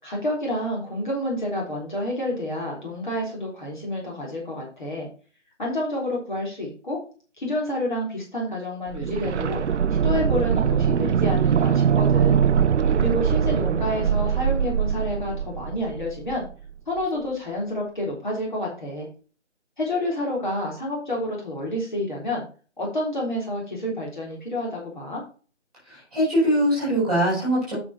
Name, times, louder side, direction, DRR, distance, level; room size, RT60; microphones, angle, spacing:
voice 1, 0.0-5.1 5.6-7.0 7.4-9.6 10.0-12.4 13.0-16.5 16.9-19.1 19.8-22.4 22.8-25.2, left 1 dB, 40° left, -3 dB, 3.6 m, -29 dB
sound 1, 8.9-16.7 17.0-17.1, right 8 dB, 70° right, 0.5 m, -22 dB
voice 2, 25.8-27.8, equal, ahead, -7 dB, 5.3 m, -22 dB
8.6 x 6.3 x 4.1 m, 0.38 s
figure-of-eight pair, 175°, 37 cm